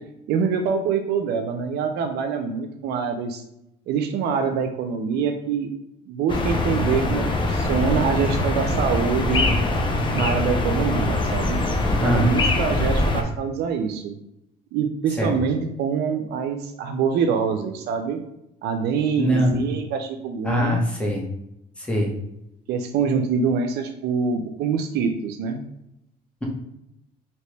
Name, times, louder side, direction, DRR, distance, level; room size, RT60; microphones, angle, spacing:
voice 1, 0.3-3.4 3.9-5.7 6.1-9.5 10.1-11.6 12.0-14.2 14.7-18.2 18.6-20.8 22.7-25.6, right 6 dB, 75° right, 5 dB, 0.4 m, -25 dB
sound 1, 6.3-13.2, left 2 dB, 30° left, 0.5 m, -23 dB
voice 2, 12.0-12.3 15.2-15.3 19.2-19.6 20.4-21.2 21.8-22.1, equal, 5° left, -2 dB, 0.9 m, -22 dB
2.9 x 2.9 x 3.2 m, 0.82 s
cardioid pair, 110°, 17 cm